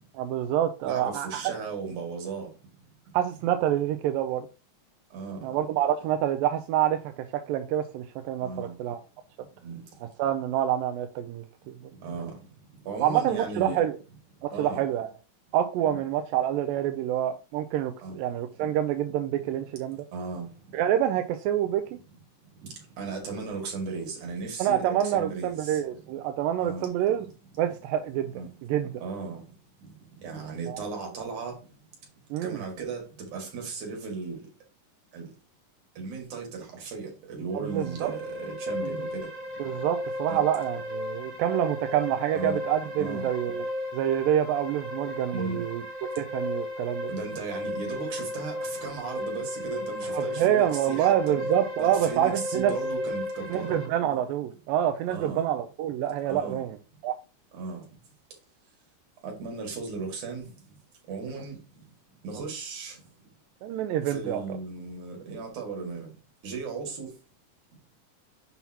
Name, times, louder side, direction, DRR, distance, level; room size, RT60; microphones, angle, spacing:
voice 1, 0.1-1.5 3.1-4.5 5.4-9.0 10.2-11.8 13.0-13.9 14.4-15.1 15.5-20.0 20.7-21.8 24.6-27.3 27.6-28.3 28.6-28.9 30.7-30.8 32.3-32.6 37.7-38.1 39.6-43.6 43.9-45.8 46.2-47.1 50.1-52.7 53.5-56.8 57.0-57.1 63.6-64.4, right 11 dB, 85° right, 2.3 m, -27 dB
voice 2, 0.8-2.5 5.1-5.4 8.4-8.8 9.6-9.8 12.0-12.4 12.9-13.8 14.4-14.8 15.8-16.0 18.0-18.2 18.6-18.7 20.1-20.5 22.6-25.8 26.6-26.9 28.3-28.5 29.0-29.4 30.2-31.6 32.4-34.5 35.1-35.3 36.0-39.3 40.3-40.4 42.3-42.6 43.0-43.3 45.3-45.6 47.1-51.4 51.8-53.8 55.1-55.5 56.3-56.6 57.5-57.8 59.2-60.5 61.1-61.8 62.2-63.0 64.1-66.1 66.4-67.1, right 4 dB, 65° right, 3.5 m, -36 dB
sound 1, 37.5-53.9, left 1 dB, 35° right, 4.1 m, -35 dB
7.1 x 5.5 x 2.9 m
omnidirectional pair, 3.9 m